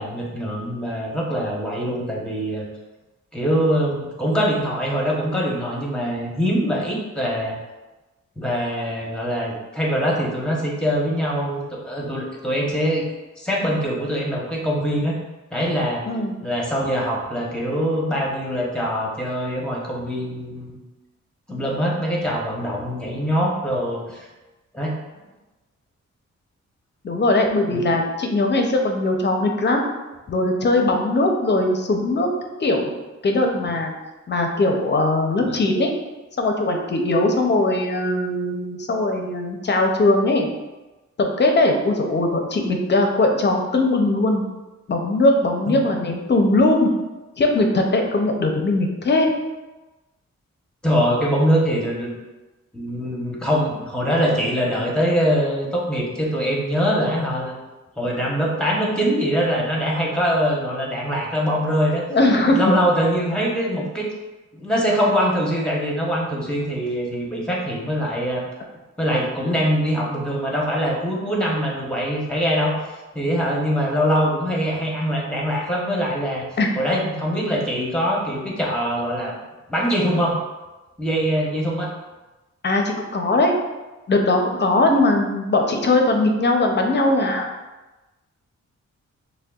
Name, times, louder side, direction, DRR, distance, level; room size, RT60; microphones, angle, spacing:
voice 1, 0.0-2.6 3.3-7.6 8.4-13.0 13.4-15.2 15.5-16.0 16.4-20.8 21.5-24.3 24.7-24.9 27.7-27.9 35.4-35.5 45.7-45.8 50.8-52.1 52.7-57.6 58.0-62.0 62.5-64.1 64.5-68.4 69.0-72.7 73.1-76.5 76.8-79.3 79.7-80.4 81.0-81.9, equal, 5° left, -3 dB, 0.9 m, -23 dB
voice 2, 16.1-16.4 27.0-29.8 30.3-32.3 32.6-33.0 33.2-33.9 34.3-35.9 36.4-40.5 41.2-44.4 44.9-46.9 47.4-49.3 62.1-62.7 76.6-76.7 82.6-83.5 84.1-87.5, left 2 dB, 40° left, 3 dB, 0.6 m, -20 dB
6.3 x 2.1 x 2.3 m, 1.1 s
wide cardioid pair, 105°, 29 cm